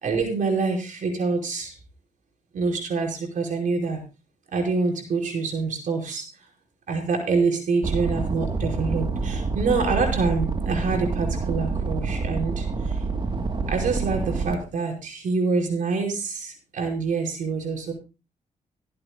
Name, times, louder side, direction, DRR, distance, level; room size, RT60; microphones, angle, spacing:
voice 1, 0.0-1.7 2.5-4.0 4.5-6.2 6.9-13.0 13.7-17.9, right 4 dB, 75° right, 1 dB, 5.0 m, -26 dB
sound 1, 7.8-14.5, right 4 dB, 35° right, 1.2 m, -27 dB
26.0 x 8.8 x 2.2 m, 0.30 s
cardioid pair, 110°, 14 cm